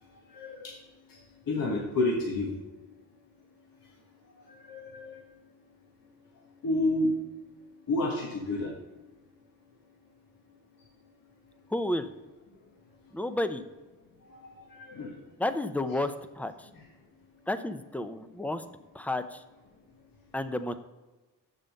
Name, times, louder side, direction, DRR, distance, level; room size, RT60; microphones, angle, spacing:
voice 1, 0.3-0.7 1.5-2.5 4.7-5.1 6.6-7.1 7.9-8.7 14.3-15.2, left 2 dB, 70° left, -1 dB, 1.5 m, -29 dB
voice 2, 11.7-12.1 13.1-13.6 15.4-16.7 17.5-18.6 18.9-19.4 20.3-20.7, left 1 dB, 5° left, 10 dB, 0.6 m, -31 dB
6.8 x 5.6 x 5.3 m, 1.1 s
cardioid pair, 65°, 35 cm